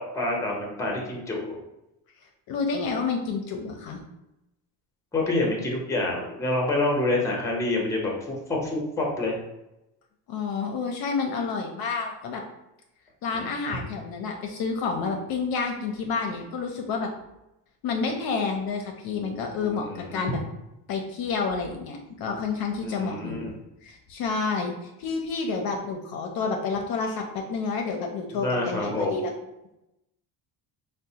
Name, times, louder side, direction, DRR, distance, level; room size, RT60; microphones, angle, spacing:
voice 1, 0.0-1.6 5.1-9.4 13.3-13.5 19.5-20.2 22.8-23.5 28.3-29.2, left 2 dB, 5° left, -1 dB, 0.6 m, -27 dB
voice 2, 2.5-4.0 10.3-12.4 13.2-17.1 17.8-19.9 20.1-20.4 20.9-23.5 23.8-24.7 25.0-29.3, left 4 dB, 55° left, 2 dB, 0.5 m, -29 dB
3.9 x 2.1 x 2.7 m, 0.90 s
cardioid pair, 135°, 43 cm